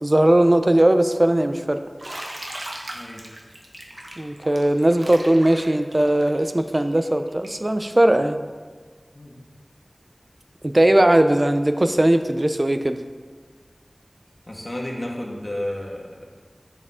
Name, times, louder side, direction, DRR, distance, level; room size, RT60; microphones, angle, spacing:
voice 1, 0.0-1.8 4.2-8.4 10.6-13.0, right 1 dB, 35° right, 8 dB, 0.5 m, -19 dB
Bathtub (filling or washing), 2.0-7.7, right 1 dB, 65° right, 1.1 m, -37 dB
voice 2, 2.9-3.2 9.1-9.4 14.5-16.0, left 1 dB, 45° left, -2 dB, 1.6 m, -31 dB
9.7 x 6.6 x 3.7 m, 1.4 s
wide cardioid pair, 55°, 0 cm